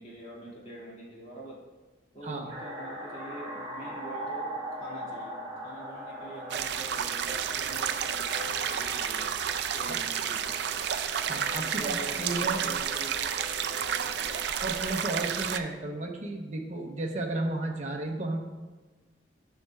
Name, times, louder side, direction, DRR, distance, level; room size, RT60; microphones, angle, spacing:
voice 1, 0.0-1.6 2.1-9.3 9.7-10.6 11.6-13.3 13.8-14.3, right 1 dB, 35° left, -5 dB, 2.1 m, -45 dB
sound 1, 2.5-14.9, equal, 25° right, 1.5 m, -41 dB
sound 2, 6.5-15.6, right 8 dB, 60° right, 0.3 m, -31 dB
voice 2, 11.2-12.6 14.6-18.4, right 2 dB, 40° right, 0 dB, 0.8 m, -33 dB
10.5 x 5.5 x 2.3 m, 1.3 s
head